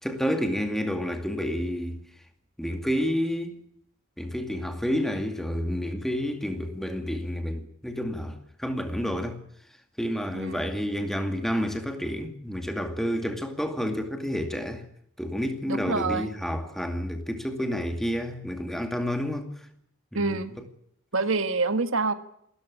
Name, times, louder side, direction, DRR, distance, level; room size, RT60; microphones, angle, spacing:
voice 1, 0.0-2.0 2.6-3.6 4.2-9.4 10.0-14.9 15.2-19.7 20.1-20.4, equal, ahead, 2.3 m, -29 dB
voice 2, 10.3-10.6 15.7-16.3 20.1-20.5 21.1-22.1, right 3 dB, 60° right, 1.6 m, -26 dB
27.0 x 14.0 x 8.5 m
head